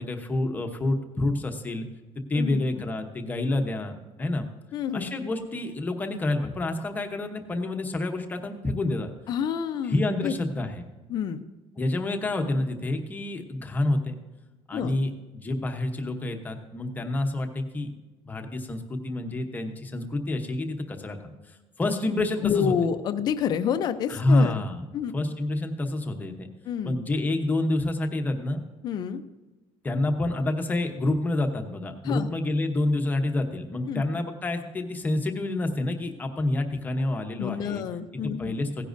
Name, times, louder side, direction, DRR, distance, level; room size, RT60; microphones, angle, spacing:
voice 1, 0.0-1.9 2.3-3.9 4.2-4.5 4.9-9.1 9.9-10.9 11.8-14.1 14.7-17.9 18.2-21.3 21.8-22.7 24.1-24.8 25.1-26.5 26.8-28.6 29.8-37.8 38.2-38.8, left 2 dB, 15° left, 4 dB, 0.9 m, -28 dB
voice 2, 4.7-5.1 9.3-10.3 11.1-11.4 14.7-15.0 22.4-24.6 24.9-25.3 26.7-27.0 28.8-29.2 32.0-32.3 33.9-34.0 37.3-38.6, left 8 dB, 35° left, 8 dB, 0.5 m, -28 dB
17.0 x 10.0 x 2.6 m, 1.2 s
cardioid pair, 175°, 12 cm